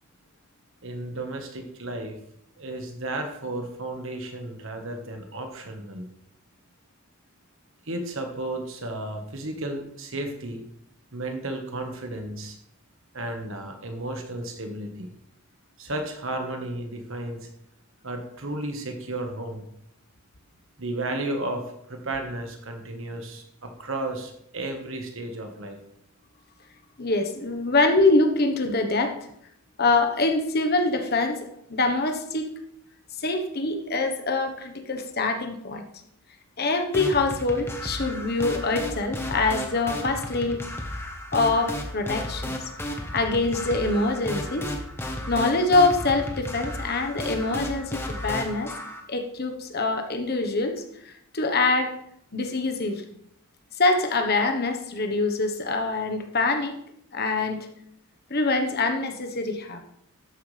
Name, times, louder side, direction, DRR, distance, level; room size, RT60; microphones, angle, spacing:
voice 1, 0.8-2.2 2.6-6.1 7.8-10.6 11.1-12.6 13.1-15.1 15.8-17.5 18.0-19.7 20.8-25.8, right 2 dB, 60° right, 4 dB, 1.5 m, -33 dB
voice 2, 27.0-29.1 29.8-31.4 31.7-32.5 33.2-35.8 36.6-40.6 41.3-42.5 43.1-44.6 45.3-48.7 49.1-51.9 52.3-53.0 53.8-56.8 57.1-57.7 58.3-59.8, left 3 dB, 45° left, 6 dB, 1.2 m, -24 dB
sound 1, 36.9-49.0, left 1 dB, 10° left, 1.2 m, -33 dB
13.0 x 9.4 x 3.4 m, 0.72 s
head